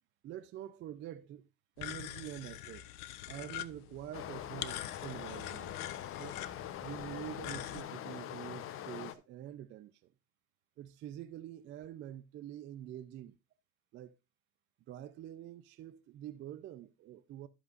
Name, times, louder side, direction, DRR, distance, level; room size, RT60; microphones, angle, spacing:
voice 1, 0.2-1.5 1.8-2.9 3.3-5.8 6.2-6.4 6.8-10.1 10.8-13.4 13.9-14.2 14.9-17.5, right 12 dB, 25° right, 0.5 m, -46 dB
sound 1, 1.8-7.8, left 14 dB, 75° left, 0.8 m, -45 dB
Stream, 4.1-9.1, left 11 dB, 30° left, 0.7 m, -43 dB
11.5 x 7.8 x 2.4 m
hypercardioid pair, 115°, 45 cm